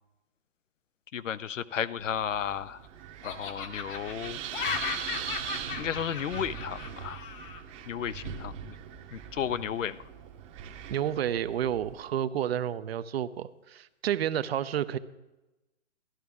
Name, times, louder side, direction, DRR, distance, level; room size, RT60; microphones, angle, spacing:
voice 1, 1.1-2.8 3.2-4.4 5.8-7.2 7.9-8.7 9.1-10.0, left 8 dB, 85° left, 16 dB, 0.6 m, -33 dB
Laughter, 2.0-2.9 3.2-7.6, left 6 dB, 45° left, 1.2 m, -37 dB
Wind, 2.0-12.1, right 9 dB, 25° right, 0.8 m, -41 dB
voice 2, 10.9-15.0, right 10 dB, 55° right, 15 dB, 0.6 m, -30 dB
12.5 x 11.0 x 3.5 m, 1.0 s
hypercardioid pair, 135°, 37 cm